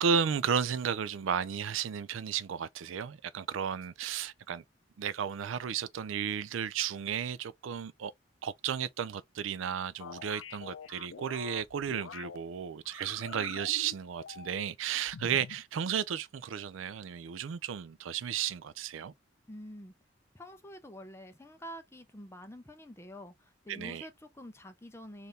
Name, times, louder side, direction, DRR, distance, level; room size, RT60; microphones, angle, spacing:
voice 1, 0.0-4.6 5.0-8.1 8.4-19.1 23.7-24.1, right 7 dB, 85° right, 0.4 m, -33 dB
sound 1, 10.0-12.4 12.9-14.7 15.1-15.6, left 6 dB, 85° left, 0.4 m, -46 dB
voice 2, 19.5-19.9 20.3-25.3, equal, 15° left, 0.6 m, -47 dB
4.1 x 2.6 x 3.2 m
head